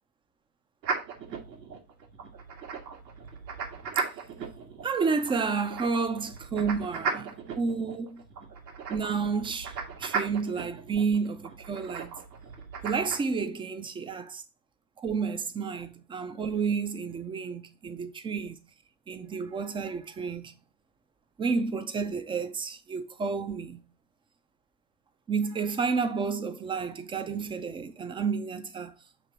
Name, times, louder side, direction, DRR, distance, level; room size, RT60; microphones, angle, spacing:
sound 1, 0.8-13.2, right 5 dB, 80° right, 2.0 m, -37 dB
voice 1, 4.8-8.2 8.9-12.1 12.8-14.4 15.0-18.6 19.1-20.5 21.4-23.8 25.3-28.9, right 5 dB, 10° right, 0.4 m, -30 dB
6.9 x 2.9 x 5.9 m
hypercardioid pair, 100°, 49 cm